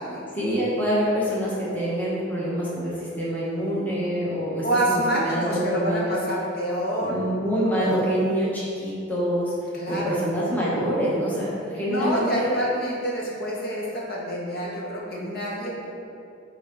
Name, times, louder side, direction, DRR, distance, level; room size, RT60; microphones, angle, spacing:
voice 1, 0.3-6.1 7.0-9.5 9.9-12.6, equal, 10° left, -8 dB, 1.1 m, -26 dB
voice 2, 4.6-7.2 7.8-8.0 9.7-10.2 11.9-15.9, right 1 dB, 50° left, -4 dB, 1.3 m, -27 dB
10.0 x 3.7 x 3.7 m, 2.4 s
head